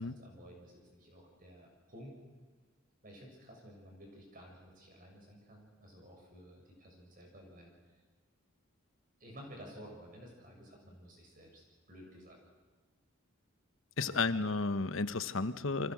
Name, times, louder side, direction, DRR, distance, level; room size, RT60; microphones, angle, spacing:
voice 1, 0.0-2.2 3.0-7.7 9.2-11.6 11.9-12.4 14.0-14.5, equal, 40° right, 0 dB, 7.0 m, -53 dB
voice 2, 14.0-15.9, left 3 dB, 75° left, 12 dB, 1.1 m, -33 dB
30.0 x 24.5 x 6.2 m, 1.4 s
head